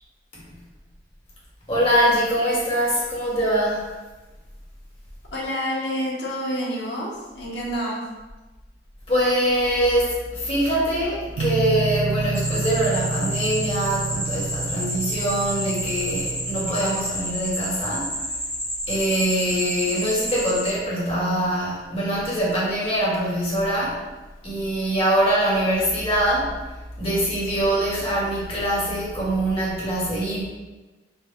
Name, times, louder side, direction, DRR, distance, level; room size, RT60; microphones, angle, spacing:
voice 1, 1.7-3.9 9.1-18.1 18.9-24.0 24.4-26.6 27.0-30.4, right 1 dB, 35° left, -7 dB, 1.3 m, -23 dB
voice 2, 5.3-8.0, equal, 70° left, -4 dB, 1.0 m, -28 dB
sound 1, 11.4-17.0, right 3 dB, 80° right, 0.3 m, -29 dB
sound 2, 12.3-20.7, equal, 5° left, 1.1 m, -30 dB
4.0 x 2.2 x 3.6 m, 1.2 s
head